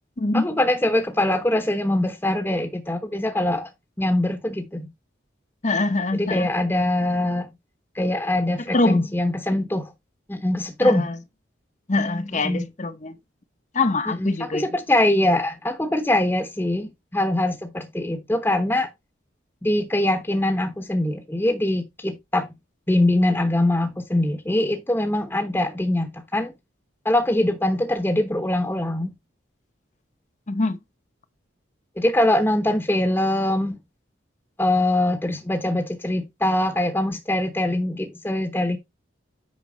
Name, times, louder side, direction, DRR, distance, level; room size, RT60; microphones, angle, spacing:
voice 1, 0.3-3.7 4.0-4.9 6.1-7.5 7.9-9.9 10.3-11.1 12.3-12.6 14.2-18.9 19.6-22.5 22.9-26.5 27.0-29.1 32.0-33.8 34.6-38.8, left 1 dB, 10° left, 1.0 m, -23 dB
voice 2, 5.6-6.5 8.7-9.1 10.8-11.2 11.9-13.2 13.7-14.7 30.5-30.8, left 2 dB, 35° left, 0.9 m, -24 dB
9.5 x 5.9 x 3.9 m
head